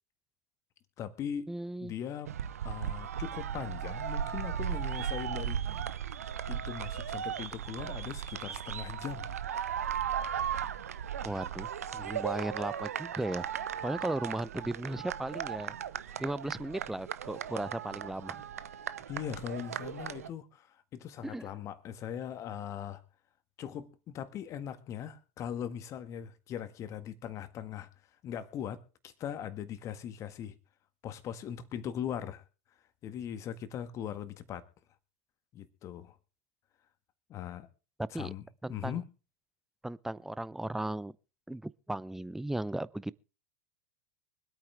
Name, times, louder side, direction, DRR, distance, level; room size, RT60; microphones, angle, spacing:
voice 1, 1.0-1.5 1.8-2.3 2.6-5.6 6.5-9.4 19.1-23.0 23.6-27.9 28.2-30.6 31.0-32.4 33.0-34.7 35.5-36.2 37.3-37.7 38.1-38.4 38.7-39.1, left 9 dB, 40° left, 1.7 m, -40 dB
voice 2, 1.5-1.9 11.2-13.5 13.8-15.8 16.2-18.4 21.2-21.5 38.0-38.3 38.6-39.0 39.8-41.1 41.5-43.1, right 1 dB, 5° right, 0.5 m, -36 dB
sound 1, 2.3-20.3, right 9 dB, 75° right, 0.8 m, -37 dB
24.5 x 8.9 x 3.4 m
figure-of-eight pair, 85°, 8 cm